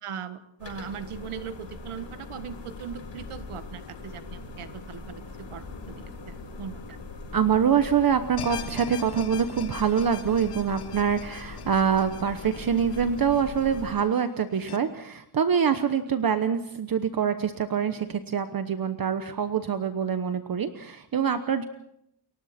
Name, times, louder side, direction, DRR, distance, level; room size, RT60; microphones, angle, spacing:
voice 1, 0.0-5.2 5.5-5.7 6.3-6.8, right 7 dB, 80° right, 10 dB, 1.7 m, -39 dB
sound 1, 0.6-14.0, left 3 dB, 60° left, 6.7 m, -41 dB
voice 2, 7.3-21.6, right 7 dB, 45° right, 9 dB, 1.1 m, -25 dB
sound 2, 8.4-14.8, left 8 dB, 90° left, 2.0 m, -43 dB
29.5 x 23.5 x 4.3 m, 0.75 s
wide cardioid pair, 155°, 50 cm